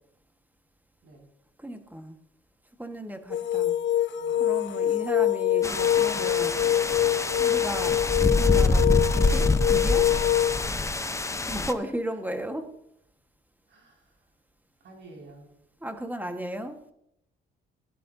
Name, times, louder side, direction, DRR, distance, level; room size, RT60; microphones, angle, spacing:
voice 1, 1.6-2.2 2.8-3.8 4.4-6.6 7.4-8.0 8.4-10.1 11.5-12.7 15.8-16.8, equal, 10° right, 7 dB, 1.4 m, -35 dB
sound 1, 3.3-10.7, left 11 dB, 70° left, 1.0 m, -25 dB
sound 2, 5.6-11.7, left 2 dB, 15° left, 0.8 m, -26 dB
voice 2, 13.7-14.1 14.8-15.5, right 2 dB, 65° right, 0 dB, 5.4 m, -50 dB
17.5 x 11.0 x 2.7 m, 0.76 s
cardioid pair, 90°, 20 cm